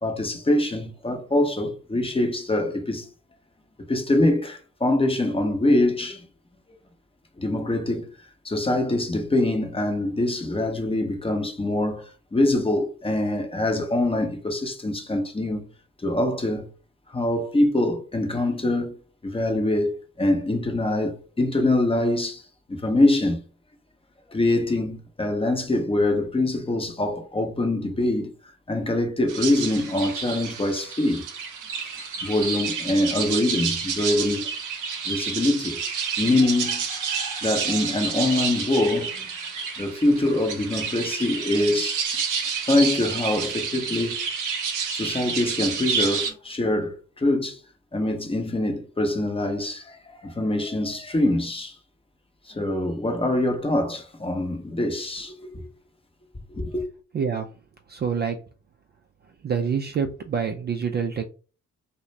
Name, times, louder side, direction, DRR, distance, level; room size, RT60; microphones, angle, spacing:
voice 1, 0.0-3.1 3.9-6.2 6.7-6.8 7.4-8.1 8.4-15.7 16.0-16.7 17.1-19.0 19.2-22.4 22.7-23.4 24.3-28.3 28.7-31.2 31.7-34.5 35.1-35.8 36.2-39.3 39.8-42.0 42.6-44.2 44.9-47.6 47.9-51.8 52.5-55.7 56.5-56.8, left 1 dB, 15° left, 0.7 m, -24 dB
sound 1, 29.3-46.3, right 6 dB, 60° right, 0.7 m, -29 dB
voice 2, 57.1-57.5 57.9-58.4 59.4-61.2, right 6 dB, 30° right, 0.4 m, -26 dB
2.3 x 2.1 x 3.1 m
hypercardioid pair, 45°, 35 cm